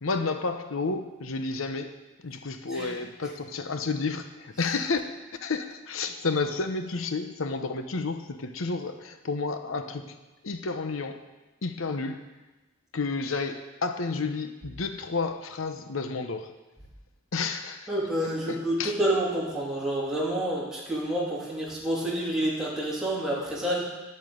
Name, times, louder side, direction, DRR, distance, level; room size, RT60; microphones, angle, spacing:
voice 1, 0.0-1.9 2.2-5.0 5.4-10.2 10.4-11.3 11.6-12.2 12.9-16.5 17.3-17.9 18.2-18.9, left 4 dB, 85° left, 8 dB, 0.9 m, -31 dB
voice 2, 17.9-23.8, right 1 dB, 5° right, -7 dB, 3.1 m, -28 dB
10.5 x 8.8 x 7.9 m, 1.1 s
head